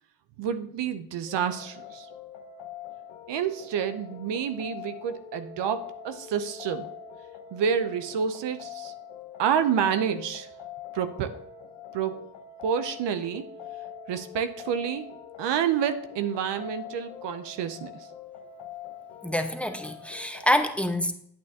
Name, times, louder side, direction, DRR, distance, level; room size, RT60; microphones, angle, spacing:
voice 1, 0.4-2.1 3.3-6.9 7.5-8.9 9.4-10.5 10.9-11.3 11.9-12.3 12.6-13.4 14.1-15.1 15.4-18.1, right 8 dB, 85° right, 10 dB, 0.7 m, -28 dB
sound 1, 1.3-20.6, left 8 dB, 85° left, 0.9 m, -44 dB
voice 2, 19.2-21.1, equal, 5° left, 7 dB, 1.0 m, -26 dB
8.7 x 8.5 x 2.8 m, 0.67 s
supercardioid pair, 55°, 41 cm